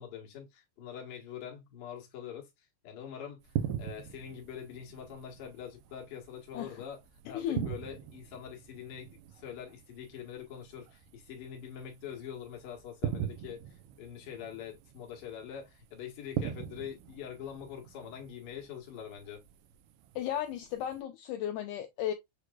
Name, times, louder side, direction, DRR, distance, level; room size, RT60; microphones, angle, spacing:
voice 1, 0.0-2.5 2.8-7.0 7.3-19.4, left 8 dB, 55° left, 1.7 m, -44 dB
sound 1, 3.4-21.0, right 10 dB, 80° right, 2.0 m, -42 dB
voice 2, 20.1-22.1, left 10 dB, 85° left, 1.8 m, -35 dB
6.5 x 3.0 x 2.3 m
omnidirectional pair, 4.1 m